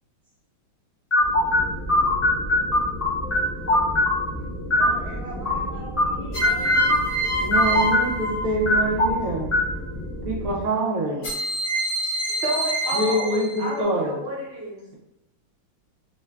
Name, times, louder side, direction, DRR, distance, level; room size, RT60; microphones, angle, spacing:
sound 1, 1.1-10.6, left 1 dB, 15° left, 0.6 m, -23 dB
sound 2, 3.2-3.8 6.3-9.0 11.2-13.8, right 1 dB, 55° left, 1.1 m, -27 dB
voice 1, 4.7-7.1 11.0-11.3 12.5-13.0, equal, 70° left, -9 dB, 0.3 m, -40 dB
voice 2, 7.4-9.5 10.2-11.3 12.9-14.2, right 1 dB, 65° right, -4 dB, 0.8 m, -25 dB
voice 3, 12.4-14.8, right 1 dB, 40° right, -5 dB, 0.9 m, -30 dB
3.2 x 2.3 x 3.2 m, 0.89 s
omnidirectional pair, 2.2 m